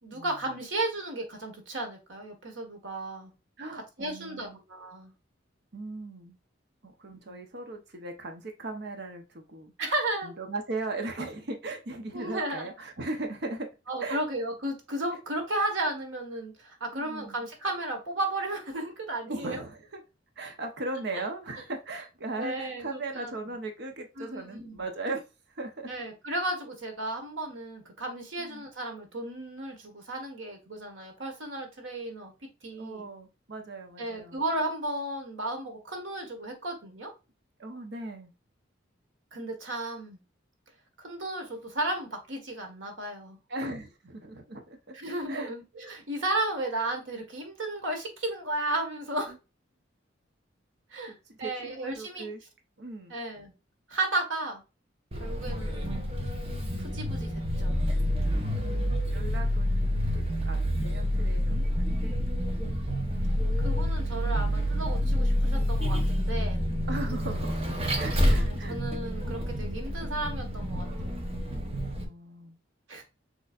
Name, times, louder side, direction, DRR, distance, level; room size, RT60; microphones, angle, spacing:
voice 1, 0.0-3.3 4.0-5.1 7.3-7.4 9.8-10.3 12.1-12.7 13.9-19.6 21.5-21.6 22.4-23.3 24.2-24.8 25.9-32.3 32.6-33.1 34.0-37.1 39.3-40.2 41.0-43.4 44.9-49.3 50.9-51.1 51.4-52.3 53.1-53.5 53.9-54.6 55.2-56.1 56.8-57.8 63.6-66.6 68.4-71.3 72.9-73.0, right 2 dB, 90° right, 3 dB, 1.6 m, -34 dB
voice 2, 3.6-4.6 5.7-6.4 6.8-9.7 10.2-13.7 14.0-14.2 16.9-17.4 19.3-20.0 20.4-25.2 25.6-25.9 28.4-28.6 32.8-34.4 37.6-38.3 43.5-45.0 45.3-45.5 51.1-52.4 52.8-53.1 58.3-59.9 60.1-62.1 66.9-67.6 67.9-68.8 71.7-72.6, right 2 dB, 60° right, 5 dB, 0.9 m, -38 dB
Vehicle, 55.1-72.0, equal, 30° right, 1.0 m, -28 dB
6.5 x 3.2 x 2.5 m, 0.28 s
head